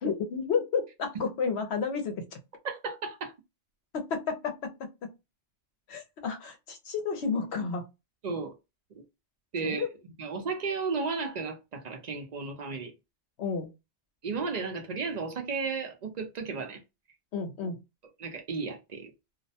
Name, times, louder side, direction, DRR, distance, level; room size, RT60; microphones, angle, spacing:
voice 1, 0.0-2.4 3.9-5.1 5.9-7.8 9.6-9.9 13.4-13.7 17.3-17.8, left 5 dB, 70° left, 0.8 m, -31 dB
voice 2, 2.6-3.3 8.2-8.5 8.9-9.0 9.5-9.8 10.2-12.9 14.2-16.8 18.2-19.1, right 4 dB, 55° right, 0.4 m, -34 dB
2.4 x 2.1 x 2.6 m
omnidirectional pair, 1.2 m